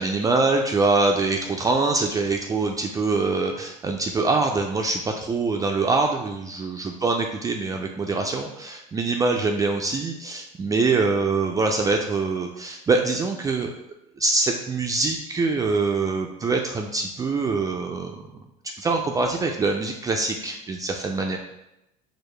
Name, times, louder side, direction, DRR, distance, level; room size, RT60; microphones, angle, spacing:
voice 1, 0.0-13.7 14.2-18.3 18.8-21.4, right 3 dB, 20° right, 2 dB, 0.3 m, -24 dB
4.6 x 2.2 x 3.3 m, 0.86 s
supercardioid pair, 105°, 17 cm